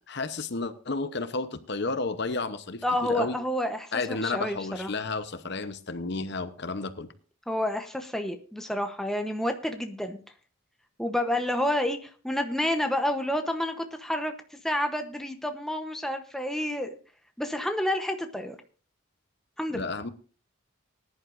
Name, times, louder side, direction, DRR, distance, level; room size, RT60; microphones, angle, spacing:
voice 1, 0.1-3.4 3.9-7.1 19.7-20.1, left 3 dB, 55° left, 11 dB, 0.8 m, -32 dB
voice 2, 2.8-4.9 7.5-10.2 11.0-14.3 14.6-16.9 17.4-18.6 19.6-19.9, left 1 dB, ahead, 5 dB, 0.9 m, -29 dB
20.0 x 11.0 x 2.6 m, 0.39 s
head